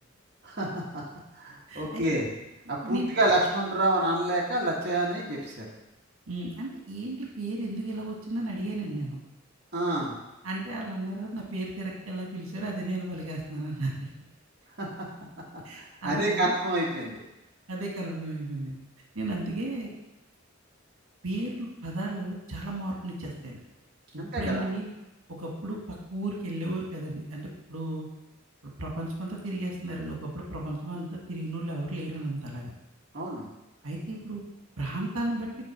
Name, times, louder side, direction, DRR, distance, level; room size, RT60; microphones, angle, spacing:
voice 1, 0.4-1.0 1.4-2.3 2.7-5.6 9.7-10.1 14.8-14.9 16.0-17.2 24.2-24.7 33.1-33.5, right 1 dB, 50° right, -4 dB, 1.5 m, -27 dB
voice 2, 1.7-2.2 2.8-3.1 6.3-9.2 10.4-14.1 15.6-16.5 17.7-18.8 19.2-19.9 21.2-23.6 24.1-24.9 25.4-28.1 28.8-32.7 33.8-34.4 34.8-35.5, right 1 dB, 80° right, -2 dB, 1.7 m, -34 dB
8.9 x 3.9 x 5.8 m, 0.96 s
head